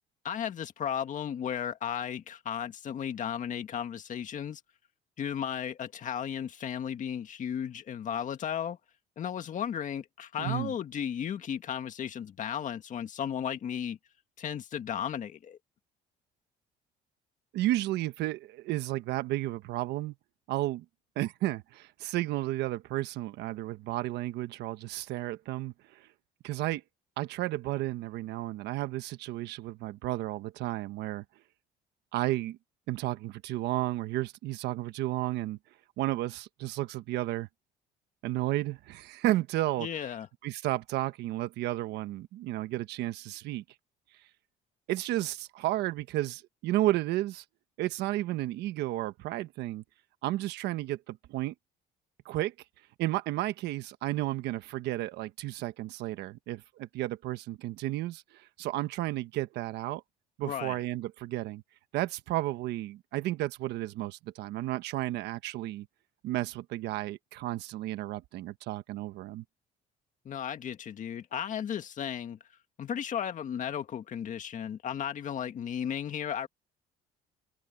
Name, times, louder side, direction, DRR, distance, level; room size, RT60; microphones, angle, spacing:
voice 1, 0.2-4.6 5.2-8.8 9.2-14.0 14.4-15.6 39.8-40.3 60.4-60.8 70.3-72.4 72.8-76.5, left 8 dB, 50° left, 1.9 m, -35 dB
voice 2, 10.4-10.7 17.5-20.1 20.5-20.8 21.2-26.0 26.4-26.8 27.2-31.2 32.1-32.6 32.9-35.6 36.0-37.5 38.2-39.9 40.4-43.6 44.9-47.4 47.8-49.8 50.2-51.5 52.2-52.5 53.0-60.0 60.4-61.6 61.9-65.9 66.2-69.4, right 16 dB, 85° right, 1.2 m, -32 dB
cardioid pair, 110°, 17 cm